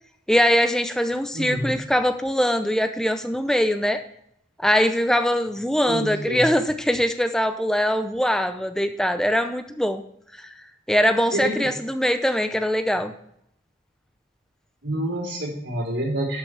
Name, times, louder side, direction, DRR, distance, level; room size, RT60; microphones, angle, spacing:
voice 1, 0.3-4.0 4.6-10.0 10.4-10.5 10.9-13.1, equal, 5° left, 8 dB, 0.5 m, -22 dB
voice 2, 1.3-1.7 5.9-6.5 11.3-11.7 14.8-16.4, right 1 dB, 80° right, -9 dB, 3.7 m, -28 dB
12.0 x 5.9 x 3.4 m, 0.72 s
head